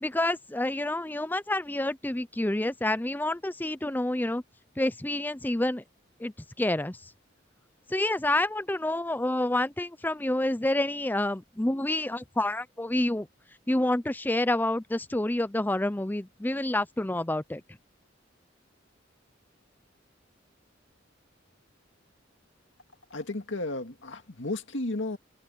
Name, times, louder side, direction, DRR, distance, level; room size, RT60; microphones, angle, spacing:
voice 1, 0.0-4.4 4.8-5.8 6.2-7.0 7.9-13.3 13.7-17.6, left 1 dB, 10° left, 0.5 m, -28 dB
voice 2, 23.1-25.2, left 2 dB, 75° left, 2.1 m, -33 dB
head